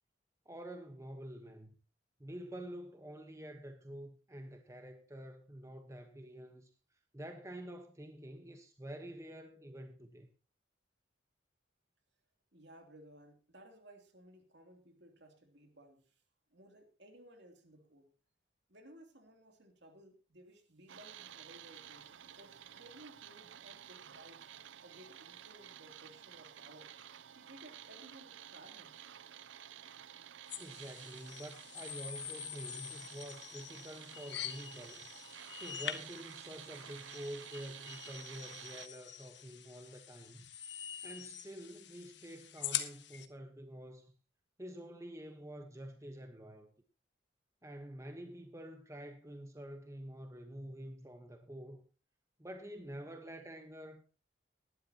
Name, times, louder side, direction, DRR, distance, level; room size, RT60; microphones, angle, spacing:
voice 1, 0.4-1.7 2.2-10.3 30.6-35.1 35.6-40.5 41.0-44.1 44.6-46.7 47.6-51.8 52.4-54.0, right 1 dB, 15° right, 1.2 m, -48 dB
voice 2, 12.5-16.1 16.5-18.1 18.7-24.5 24.8-26.9 27.4-29.0, right 1 dB, 65° right, 3.0 m, -58 dB
sound 1, 20.9-38.9, right 10 dB, 85° right, 0.6 m, -52 dB
sound 2, 30.5-43.3, left 10 dB, 70° left, 1.4 m, -45 dB
19.0 x 12.0 x 2.9 m
head